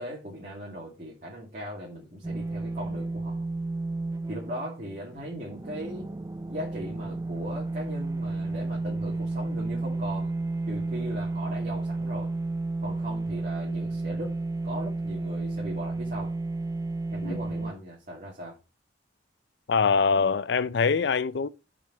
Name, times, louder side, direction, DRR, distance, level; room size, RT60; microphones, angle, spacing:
voice 1, 0.0-3.5 4.3-6.1 6.5-10.3 10.7-12.3 12.8-14.3 14.6-16.4 17.1-18.6, equal, 45° right, 2.4 m, -38 dB
sound 1, 2.2-17.7, right 2 dB, 20° right, 0.4 m, -32 dB
voice 2, 19.7-21.5, left 5 dB, 65° left, 0.4 m, -24 dB
6.9 x 5.0 x 5.6 m
head